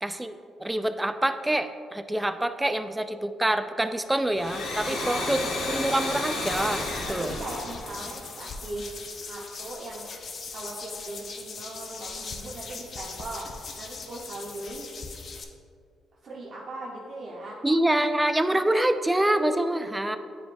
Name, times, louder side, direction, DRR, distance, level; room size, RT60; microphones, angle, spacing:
voice 1, 0.0-5.4 5.7-7.4 17.6-20.2, right 1 dB, 10° right, 10 dB, 0.3 m, -26 dB
Domestic sounds home sounds, 4.2-8.7, left 2 dB, 75° left, 1.1 m, -32 dB
voice 2, 4.8-5.3 7.1-10.1 10.5-14.9 16.2-17.6 18.5-18.6 19.8-19.9, right 2 dB, 50° right, -6 dB, 1.0 m, -39 dB
sound 1, 6.4-15.4, left 4 dB, 50° left, 0.6 m, -40 dB
9.4 x 4.5 x 2.5 m, 2.3 s
cardioid pair, 90°, 0 cm